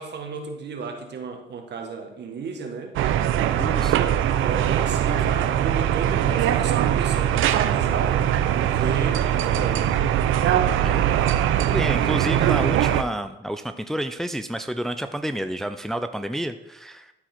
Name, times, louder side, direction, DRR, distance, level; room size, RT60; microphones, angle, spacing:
voice 1, 0.0-2.9 3.8-4.0 4.4-9.9, right 5 dB, 60° right, 4 dB, 1.7 m, -33 dB
sound 1, 2.9-13.0, right 10 dB, 80° right, 0.6 m, -21 dB
voice 2, 3.6-4.1 10.8-11.1 11.7-17.1, equal, ahead, 9 dB, 0.4 m, -30 dB
13.0 x 4.8 x 4.5 m, 0.91 s
cardioid pair, 90°, 20 cm